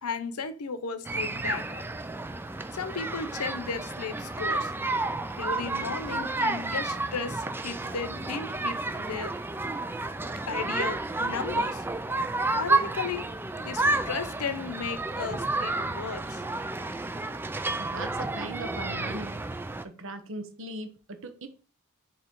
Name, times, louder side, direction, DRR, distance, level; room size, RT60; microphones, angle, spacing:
voice 1, 0.0-1.8 2.7-4.7 5.4-9.3 10.5-11.8 12.5-13.3 13.6-16.4, left 5 dB, 85° left, 0.7 m, -35 dB
sound 1, 1.0-19.8, right 2 dB, 10° right, 0.3 m, -31 dB
voice 2, 17.8-19.4 19.8-21.5, right 2 dB, 60° right, 0.9 m, -39 dB
6.5 x 3.0 x 5.2 m
head